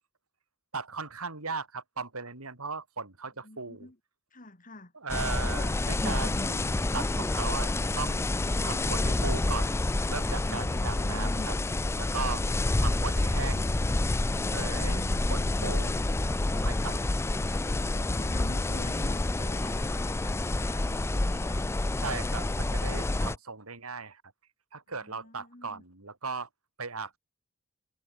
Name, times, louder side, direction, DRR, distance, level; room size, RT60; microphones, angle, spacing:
voice 1, 0.7-3.9 5.0-8.2 8.6-9.8 10.1-11.5 12.0-12.4 12.8-13.8 14.5-15.0 15.3-16.1 16.5-17.0 17.7-17.9 22.0-24.2 24.7-26.5 26.8-27.2, right 4 dB, 75° right, 4.2 m, -37 dB
voice 2, 3.4-4.0 4.3-4.9 8.3-8.7 10.4-11.5 14.4-15.3 16.7-17.1 17.7-21.7 24.9-25.8, left 1 dB, 40° left, 2.5 m, -46 dB
sound 1, 5.1-23.4, left 2 dB, 10° left, 0.3 m, -28 dB
head